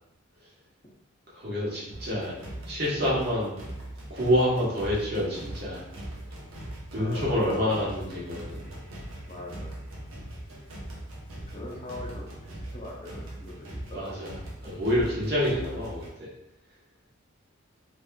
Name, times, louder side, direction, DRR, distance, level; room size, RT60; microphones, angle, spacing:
voice 1, 1.3-2.3 2.6-3.5 4.1-5.8 6.9-8.6 13.9-14.3 14.6-16.3, equal, 50° right, -6 dB, 1.0 m, -27 dB
sound 1, 1.9-16.1, right 1 dB, 75° right, 0.8 m, -41 dB
voice 2, 6.9-7.9 9.3-9.7 11.5-14.3, left 1 dB, 30° left, -3 dB, 0.6 m, -42 dB
3.3 x 2.9 x 2.2 m, 0.86 s
head